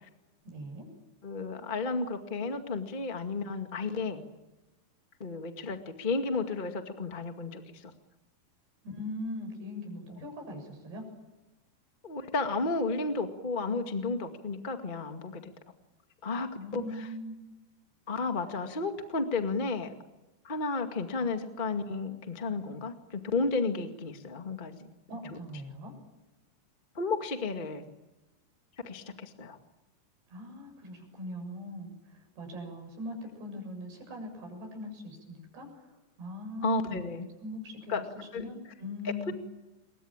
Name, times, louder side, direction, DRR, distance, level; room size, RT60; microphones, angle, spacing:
voice 1, 0.5-0.9 8.9-11.0 16.6-17.4 25.1-25.9 30.3-35.7 36.2-37.0 37.4-39.3, left 1 dB, 70° right, 3 dB, 9.4 m, -41 dB
voice 2, 1.2-4.2 5.2-7.9 10.2-10.3 12.0-15.5 16.2-17.1 18.1-19.9 20.4-24.9 26.9-27.8 28.8-29.6 36.6-37.3 37.9-38.4 39.3-39.4, left 3 dB, 40° left, 6 dB, 0.7 m, -33 dB
28.5 x 23.0 x 9.0 m, 1.1 s
omnidirectional pair, 4.9 m